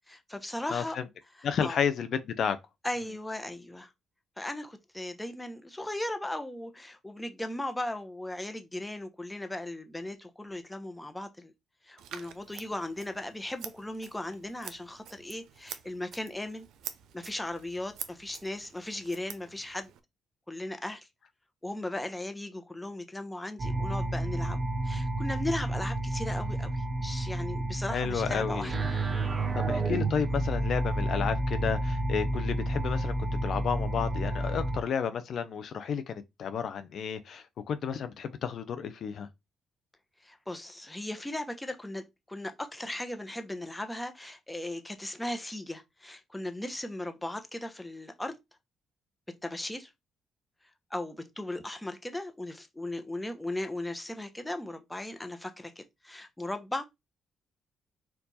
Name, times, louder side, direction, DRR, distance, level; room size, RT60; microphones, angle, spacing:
voice 1, 0.1-1.0 1.4-1.8 2.8-3.9 4.4-11.5 11.8-16.7 17.1-19.9 20.5-21.1 21.6-28.7 40.2-48.4 49.4-49.9 50.9-56.9, left 1 dB, 10° left, 0.8 m, -37 dB
voice 2, 0.7-1.0 1.4-2.6 27.9-28.7 29.5-33.1 33.4-39.3, left 7 dB, 60° left, 0.6 m, -32 dB
Scissors, 12.0-20.0, right 9 dB, 85° right, 0.6 m, -47 dB
sound 1, 23.6-34.8, right 1 dB, 35° right, 0.9 m, -30 dB
4.5 x 2.5 x 4.1 m
cardioid pair, 90°, 0 cm